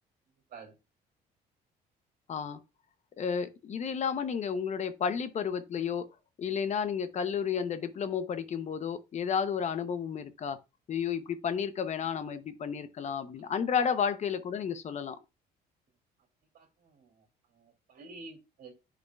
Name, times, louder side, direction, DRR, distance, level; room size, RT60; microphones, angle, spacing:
voice 1, 2.3-2.6 3.2-6.1 6.4-10.6 10.9-15.2, left 7 dB, 45° left, 0.8 m, -32 dB
voice 2, 16.5-17.3 17.5-18.7, right 3 dB, 60° right, 2.7 m, -50 dB
10.5 x 5.0 x 2.3 m
cardioid pair, 110°, 17 cm